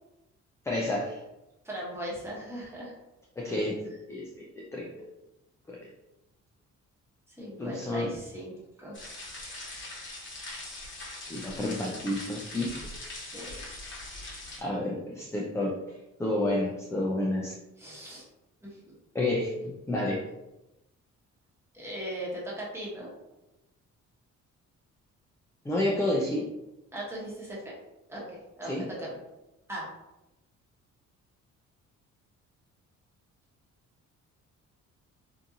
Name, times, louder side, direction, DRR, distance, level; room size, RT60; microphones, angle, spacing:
voice 1, 0.6-1.2 3.4-4.9 5.7-5.9 7.6-8.1 11.3-12.9 14.6-15.8 16.2-17.6 19.1-20.2 25.6-26.5 28.6-28.9, left 1 dB, 10° left, -3 dB, 0.4 m, -30 dB
voice 2, 1.6-2.9 7.4-9.2 13.3-13.5 17.8-18.3 18.6-18.9 21.7-23.1 26.9-27.8 28.1-29.2 29.7-29.9, right 1 dB, 10° right, -6 dB, 1.1 m, -39 dB
sound 1, 8.9-14.6, left 2 dB, 40° left, 0.9 m, -41 dB
2.7 x 2.5 x 2.4 m, 0.96 s
cardioid pair, 90°, 30 cm